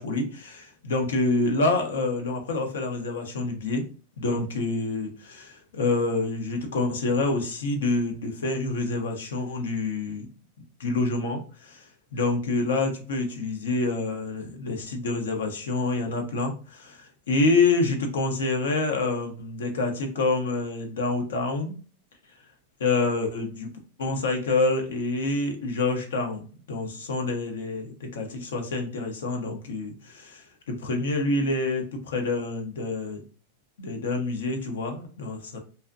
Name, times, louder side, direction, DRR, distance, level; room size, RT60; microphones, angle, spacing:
voice 1, 0.0-3.8 4.2-10.3 10.8-21.8 22.8-23.7 24.0-33.2 33.8-35.6, left 3 dB, 90° left, 0.6 m, -27 dB
2.5 x 2.1 x 2.5 m
supercardioid pair, 130°, 0 cm